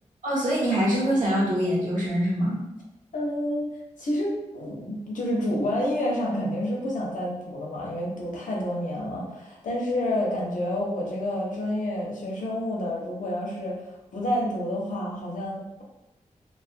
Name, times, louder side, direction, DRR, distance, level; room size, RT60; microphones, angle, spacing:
voice 1, 0.2-2.6, equal, 80° right, -7 dB, 1.0 m, -24 dB
voice 2, 3.1-3.6 4.0-13.8 14.1-15.6, left 1 dB, 80° left, -3 dB, 0.7 m, -29 dB
2.4 x 2.1 x 2.5 m, 0.94 s
wide cardioid pair, 140°, 13 cm